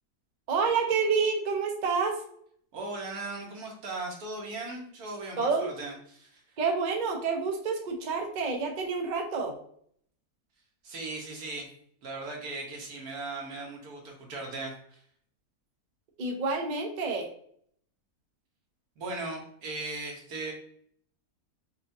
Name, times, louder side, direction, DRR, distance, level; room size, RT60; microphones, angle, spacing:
voice 1, 0.5-2.2 5.4-5.7 6.6-9.5 16.2-17.3, right 5 dB, 50° right, 2 dB, 0.5 m, -28 dB
voice 2, 2.7-6.4 10.8-11.7 12.0-15.0 19.0-20.5, right 2 dB, 75° right, 0 dB, 1.5 m, -38 dB
5.5 x 2.4 x 2.6 m, 0.64 s
omnidirectional pair, 1.6 m